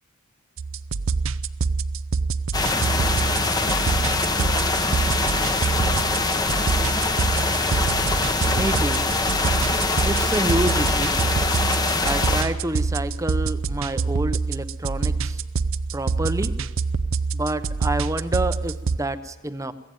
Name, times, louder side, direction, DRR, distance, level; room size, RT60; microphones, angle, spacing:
sound 1, 0.6-19.0, right 4 dB, 65° right, 0.6 m, -26 dB
sound 2, 2.5-12.4, left 3 dB, 20° left, 1.0 m, -23 dB
voice 1, 8.5-9.0 10.0-11.1 12.0-15.4 15.9-16.5 17.3-19.7, right 1 dB, 15° right, 12 dB, 0.8 m, -28 dB
22.5 x 16.5 x 9.3 m, 1.3 s
head